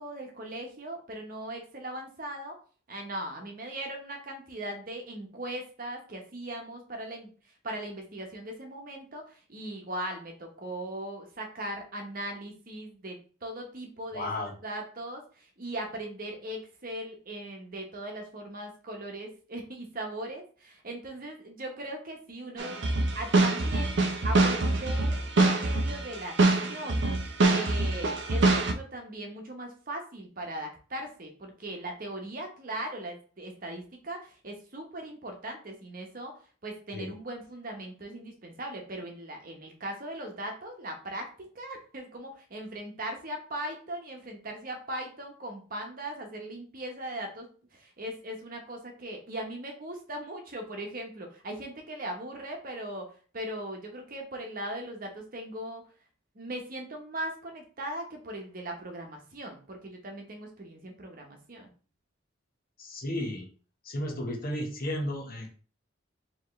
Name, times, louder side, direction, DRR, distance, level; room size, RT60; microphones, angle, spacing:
voice 1, 0.0-2.6 2.9-7.3 7.6-36.3 36.6-55.9 56.3-61.7, right 1 dB, 45° right, 3 dB, 0.9 m, -39 dB
voice 2, 14.1-14.5 36.9-37.1 62.8-63.5 63.8-65.5, left 1 dB, 45° left, 2 dB, 1.0 m, -33 dB
sound 1, 22.6-28.7, right 2 dB, 60° right, 0.6 m, -25 dB
4.6 x 3.0 x 3.1 m, 0.38 s
head